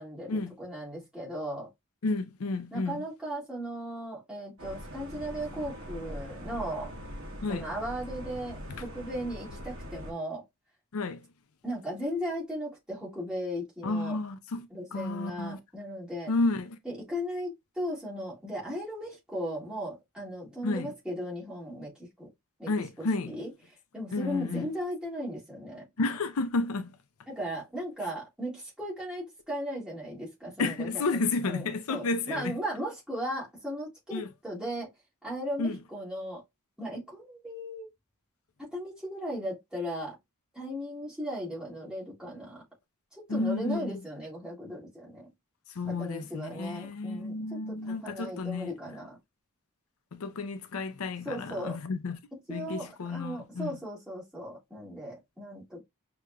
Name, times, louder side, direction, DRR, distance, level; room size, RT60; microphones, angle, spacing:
voice 1, 0.0-1.7 2.7-6.9 7.5-10.4 11.6-14.2 14.7-16.3 16.8-22.3 22.6-22.7 23.0-23.5 23.9-25.9 27.3-31.0 31.4-34.9 35.2-36.4 36.8-37.9 38.6-40.2 40.5-42.6 43.2-45.3 45.8-49.2 51.2-51.8 52.5-55.8, equal, 5° right, 2.2 m, -37 dB
voice 2, 2.0-3.0 7.4-7.7 10.9-11.3 13.8-15.6 16.3-16.8 20.6-20.9 22.7-23.3 24.1-24.7 26.0-27.0 30.6-32.6 34.1-34.3 35.6-35.8 43.3-44.0 45.7-48.7 50.1-52.2 52.5-53.7, left 3 dB, 75° left, 0.5 m, -31 dB
sound 1, 4.6-10.1, equal, 60° right, 1.1 m, -42 dB
6.0 x 2.8 x 2.2 m
head